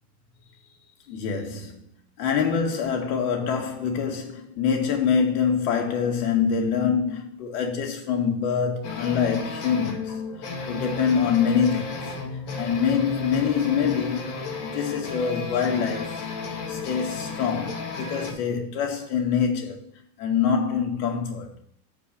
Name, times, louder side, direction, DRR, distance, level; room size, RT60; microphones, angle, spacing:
voice 1, 1.1-1.8 2.2-12.1 12.5-14.3 14.6-19.9 20.2-21.6, left 7 dB, 70° left, 2.1 m, -25 dB
sound 1, 8.8-18.3, left 3 dB, 40° left, 1.8 m, -33 dB
7.2 x 4.8 x 6.5 m
supercardioid pair, 145°, 46 cm